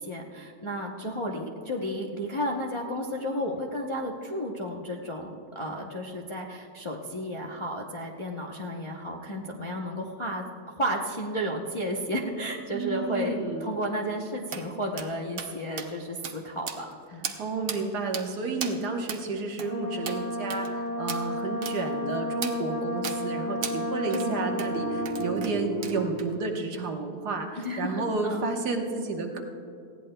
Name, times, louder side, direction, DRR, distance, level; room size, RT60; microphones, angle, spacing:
voice 1, 0.0-17.3 24.1-24.4 27.6-28.5, equal, 30° left, -1 dB, 0.5 m, -33 dB
voice 2, 12.7-13.7 17.4-29.4, right 3 dB, 80° right, 3 dB, 1.7 m, -31 dB
sound 1, 14.5-14.6 15.0-15.1 15.4-15.5 15.8-15.9 16.2-16.4 16.7-16.9 17.2-17.4 17.7-17.8 18.1-18.3 18.6-18.8 19.1-19.2 19.6-19.7 20.1-20.2 20.5-20.7 21.1-21.2 21.6-21.8 22.4-22.6 23.0-23.2 23.6-23.8 24.1-24.3 24.6-24.7 25.1-25.5 25.8-26.3, right 7 dB, 60° right, 1.2 m, -35 dB
Brass instrument, 19.6-25.5, left 1 dB, 50° left, 1.6 m, -32 dB
sound 2, 21.3-26.1, right 5 dB, 70° left, 3.5 m, -38 dB
19.5 x 15.0 x 2.2 m, 2.6 s
omnidirectional pair, 1.7 m